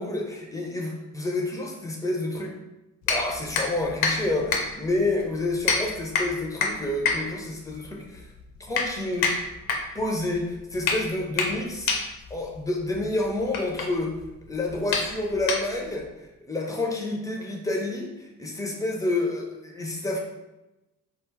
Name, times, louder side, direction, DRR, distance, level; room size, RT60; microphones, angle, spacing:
voice 1, 0.0-2.5 3.1-8.3 8.6-9.3 9.9-11.9 12.3-14.2 14.5-16.1 16.5-20.2, left 2 dB, 10° left, 0 dB, 0.3 m, -29 dB
sound 1, 3.0-16.0, left 4 dB, 70° left, 0.5 m, -29 dB
2.9 x 2.1 x 2.3 m, 0.98 s
figure-of-eight pair, 40°, 45 cm